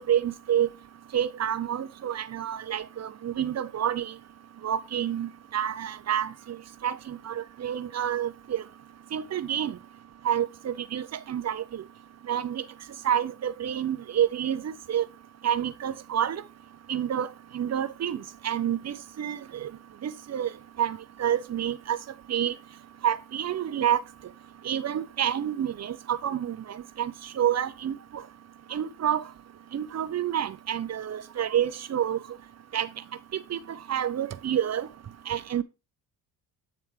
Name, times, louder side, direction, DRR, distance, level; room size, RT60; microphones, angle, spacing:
voice 1, 0.1-0.7 1.1-4.1 4.6-6.3 6.8-8.6 9.1-9.7 10.2-11.8 12.3-12.6 13.0-15.1 15.4-16.4 16.9-19.7 20.0-20.5 20.8-22.0 22.3-22.5 23.0-24.0 24.6-28.0 28.7-29.2 29.7-32.2 32.7-32.9 33.5-34.9 35.3-35.6, right 10 dB, 35° right, 0.6 m, -28 dB
8.6 x 3.3 x 4.8 m
hypercardioid pair, 55°, 48 cm